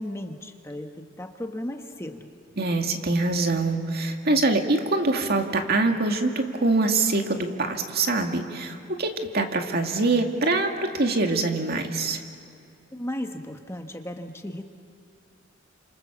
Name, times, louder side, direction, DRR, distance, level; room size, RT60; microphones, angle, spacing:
voice 1, 0.0-2.3 12.9-14.6, left 1 dB, 15° left, 5 dB, 1.4 m, -35 dB
voice 2, 2.6-12.2, right 2 dB, 55° right, 4 dB, 2.2 m, -24 dB
29.5 x 27.0 x 7.3 m, 2.5 s
head